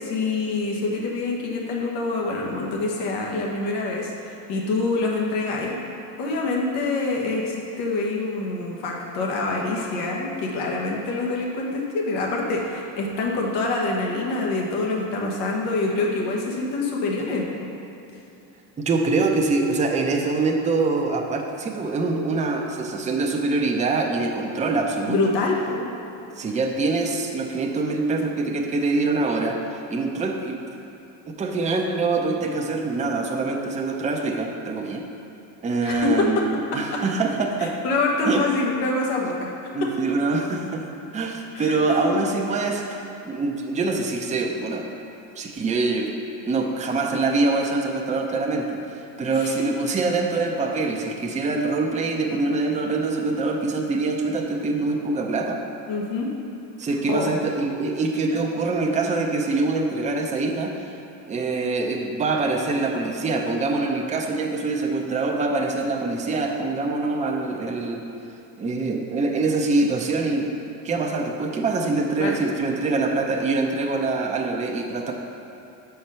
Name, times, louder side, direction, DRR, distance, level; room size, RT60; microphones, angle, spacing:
voice 1, 0.0-5.8 6.2-17.7 25.1-25.9 35.8-36.5 36.9-37.0 37.6-39.9 41.5-41.8 49.3-49.5 55.9-56.3 57.1-57.3 72.2-72.4, left 3 dB, 80° left, -1 dB, 1.4 m, -26 dB
voice 2, 18.8-25.2 26.4-29.6 29.9-30.6 31.3-35.0 35.6-37.8 38.2-38.4 39.7-40.8 41.1-44.9 45.4-46.1 46.4-55.6 56.8-60.7 61.3-68.0 68.6-70.5 70.8-75.1, right 3 dB, 15° right, 1 dB, 0.6 m, -24 dB
6.3 x 4.6 x 5.6 m, 2.9 s
cardioid pair, 115°, 41 cm